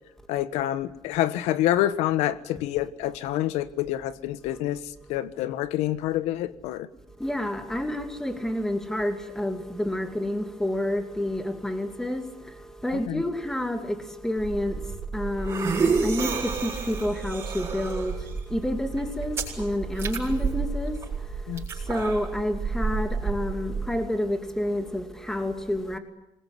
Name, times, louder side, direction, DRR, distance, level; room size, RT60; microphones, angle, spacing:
voice 1, 0.3-4.8 5.1-6.9 13.1-13.2 21.5-21.7, left 13 dB, 85° left, 1.4 m, -27 dB
voice 2, 7.2-26.0, left 1 dB, 5° left, 2.6 m, -29 dB
sound 1, 14.4-23.9, right 5 dB, 25° right, 7.4 m, -30 dB
26.5 x 21.5 x 9.7 m
cardioid pair, 165°, 11 cm